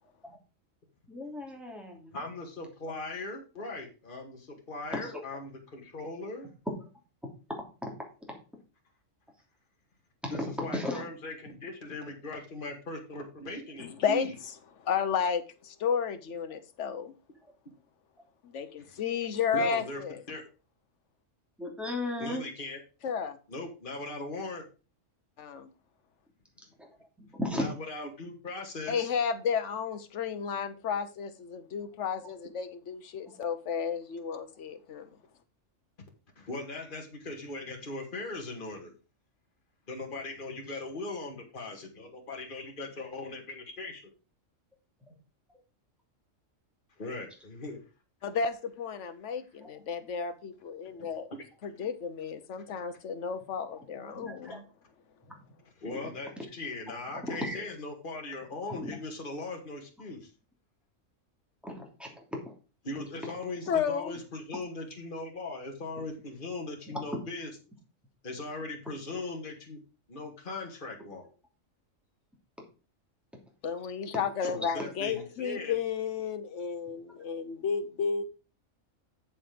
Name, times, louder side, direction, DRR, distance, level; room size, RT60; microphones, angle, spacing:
voice 1, 1.1-2.1 4.9-5.0 10.6-11.1 21.6-22.4 26.8-26.9 27.3-27.7 54.2-54.6 57.3-57.6 58.8-58.9 61.6-62.5 77.1-77.2, left 1 dB, ahead, 2.8 m, -35 dB
voice 2, 2.1-6.5 10.3-14.3 19.5-20.0 20.3-20.5 22.2-22.8 23.5-24.6 27.5-29.1 36.4-38.9 39.9-44.0 47.0-47.8 51.0-51.5 54.1-54.3 55.8-60.3 62.8-67.5 68.2-69.8 70.1-71.2 74.4-75.8, left 2 dB, 40° left, 2.1 m, -39 dB
voice 3, 13.8-14.3 14.8-17.1 18.4-20.2 23.0-23.4 25.4-25.7 28.9-35.1 48.2-51.3 51.6-54.6 63.7-64.2 73.6-78.2, left 6 dB, 65° left, 1.3 m, -32 dB
7.6 x 7.1 x 5.1 m
omnidirectional pair, 1.3 m